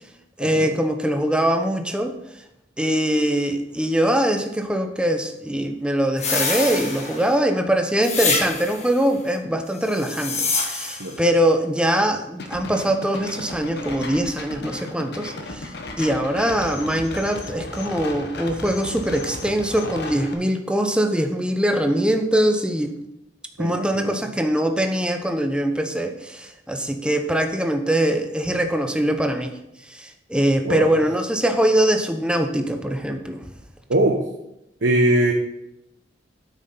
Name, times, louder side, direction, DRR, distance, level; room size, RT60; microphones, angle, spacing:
voice 1, 0.4-2.1 2.8-15.7 16.0-22.9 23.6-29.5 29.9-33.4, right 1 dB, 5° right, 6 dB, 0.9 m, -22 dB
sound 1, 6.2-7.4 8.0-8.9 9.9-11.1, left 4 dB, 40° left, 1.9 m, -25 dB
sound 2, 12.4-20.3, left 2 dB, 65° left, 1.2 m, -35 dB
voice 2, 23.6-24.2 30.6-31.0 33.9-34.2 34.8-35.3, right 1 dB, 85° right, 2 dB, 0.9 m, -21 dB
8.9 x 6.3 x 5.6 m, 0.84 s
head